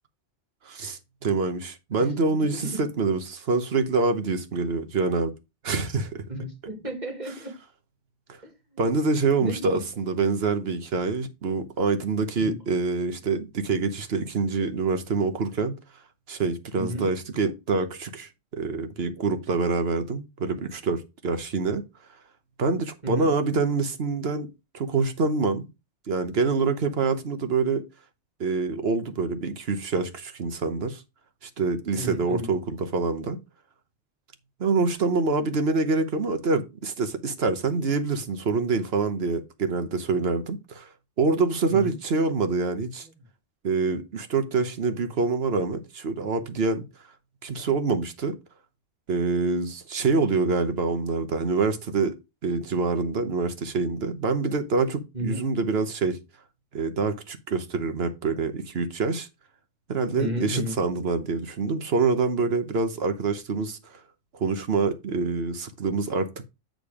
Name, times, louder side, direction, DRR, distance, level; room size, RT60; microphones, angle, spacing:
voice 1, 0.6-5.3 5.6-6.2 8.3-8.4 8.8-15.7 16.3-21.8 22.6-24.5 24.7-25.7 26.1-27.8 28.4-31.0 31.4-33.4 34.6-40.9 41.2-43.1 43.6-46.8 47.4-48.4 49.1-52.1 52.4-56.2 56.7-59.3 59.9-64.0 64.3-66.4, right 4 dB, 65° right, 1.3 m, -26 dB
voice 2, 2.0-2.9 6.3-7.5 8.4-8.5 9.2-9.9 12.4-12.6 16.8-17.0 23.0-23.3 32.0-32.5 41.7-41.9 55.1-55.4 60.2-60.8, equal, 40° right, 2.3 m, -33 dB
8.7 x 3.9 x 4.9 m
omnidirectional pair, 1.1 m